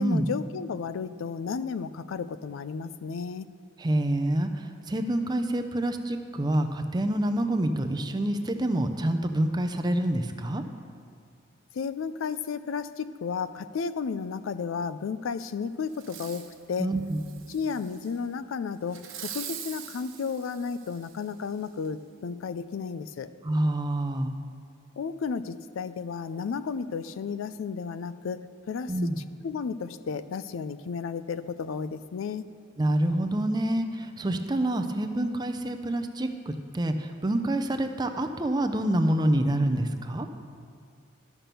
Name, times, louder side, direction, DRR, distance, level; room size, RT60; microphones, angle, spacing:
voice 1, 0.0-3.5 11.7-16.9 17.5-23.3 25.0-28.4 28.7-29.1 29.4-32.5, left 5 dB, 85° left, 14 dB, 0.4 m, -33 dB
voice 2, 3.8-10.6 16.8-17.3 23.4-24.4 28.9-29.2 32.8-40.3, right 1 dB, 20° right, 6 dB, 0.5 m, -27 dB
Fireworks, 15.9-16.5 17.1-18.1 18.9-21.3 21.8-21.9, right 9 dB, 90° right, 1.0 m, -42 dB
12.0 x 5.9 x 6.8 m, 2.2 s
head